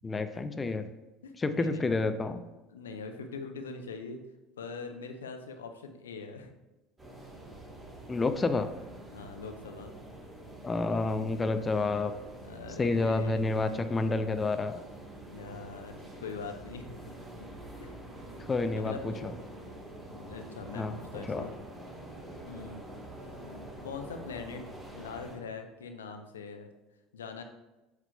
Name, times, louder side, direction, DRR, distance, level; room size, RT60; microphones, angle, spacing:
voice 1, 0.0-0.9 1.4-2.4 8.1-8.7 10.6-12.1 12.8-14.8 18.5-19.3 20.8-20.9 21.3-21.5, left 3 dB, 25° left, 9 dB, 0.5 m, -29 dB
voice 2, 1.2-1.9 2.7-4.2 4.6-6.5 9.1-9.9 12.4-13.6 15.3-17.1 17.8-17.9 18.7-19.3 20.2-21.5 22.5-22.8 23.8-24.6 24.9-26.7 27.1-27.4, left 4 dB, 80° left, 6 dB, 0.6 m, -42 dB
sound 1, 7.0-25.4, right 1 dB, 20° right, 2.1 m, -46 dB
7.8 x 5.9 x 2.2 m, 1.0 s
figure-of-eight pair, 65°, 0 cm